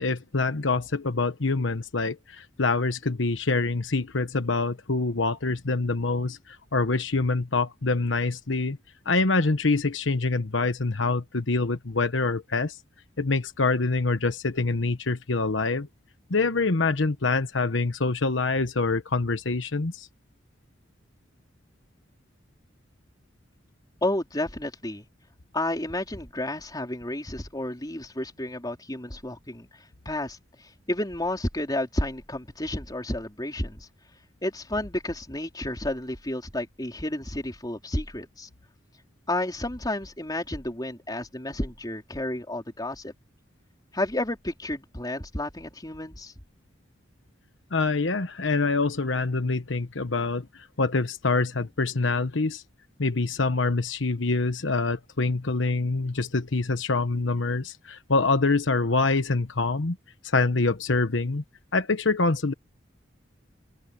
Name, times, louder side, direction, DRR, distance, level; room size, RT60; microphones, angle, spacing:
voice 1, 0.0-8.8 9.0-12.8 13.2-15.9 16.3-20.1 47.7-52.6 53.0-60.0 60.2-61.4 61.7-62.5, left 3 dB, 85° left, 1.2 m, -25 dB
voice 2, 24.0-25.1 25.5-29.7 30.1-33.9 34.4-38.5 39.3-43.1 43.9-46.3, left 1 dB, 20° left, 3.8 m, -31 dB
head